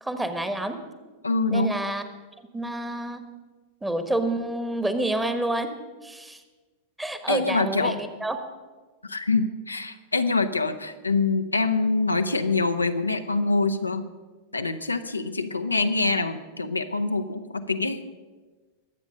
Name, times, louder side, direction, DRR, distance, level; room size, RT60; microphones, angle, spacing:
voice 1, 0.0-0.8 1.5-2.0 2.5-3.2 3.8-5.7 6.0-6.4 7.0-8.4, right 1 dB, 5° right, 9 dB, 1.3 m, -28 dB
voice 2, 1.2-1.8 7.3-8.0 9.0-14.1 14.5-18.0, left 3 dB, 80° left, 7 dB, 0.8 m, -25 dB
22.0 x 8.1 x 5.4 m, 1.3 s
figure-of-eight pair, 90°, 0 cm